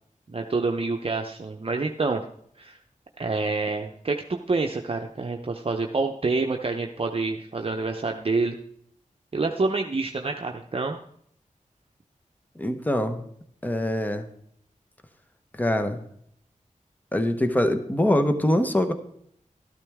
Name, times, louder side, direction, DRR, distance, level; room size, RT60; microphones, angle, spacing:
voice 1, 0.3-2.2 2.6-2.8 3.2-8.6 9.3-11.0, right 3 dB, 45° right, 3 dB, 0.8 m, -27 dB
voice 2, 12.6-13.3 13.6-14.3 15.5-16.0 17.1-18.9, left 1 dB, 10° left, 8 dB, 1.0 m, -23 dB
13.0 x 12.0 x 3.6 m, 0.68 s
wide cardioid pair, 75°, 14 cm